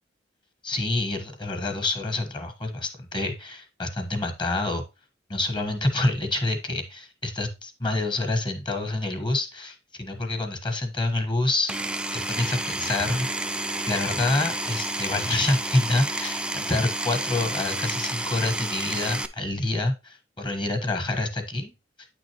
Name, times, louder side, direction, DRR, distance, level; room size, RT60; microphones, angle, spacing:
voice 1, 0.6-4.8 5.3-13.3 13.9-21.7, left 2 dB, 25° left, 6 dB, 1.2 m, -27 dB
Power tool, 11.7-19.3, right 1 dB, 5° right, 0.4 m, -30 dB
8.9 x 6.1 x 2.9 m, 0.26 s
head